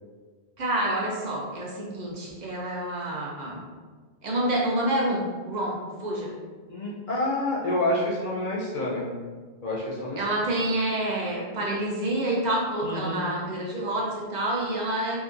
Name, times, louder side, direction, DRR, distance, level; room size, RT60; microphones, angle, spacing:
voice 1, 0.6-3.6 4.2-6.3 10.2-15.2, right 1 dB, 55° right, -3 dB, 0.5 m, -28 dB
voice 2, 6.7-9.1 9.6-10.2 12.8-13.2, left 1 dB, 55° left, -5 dB, 0.7 m, -28 dB
2.8 x 2.3 x 2.4 m, 1.5 s
omnidirectional pair, 1.1 m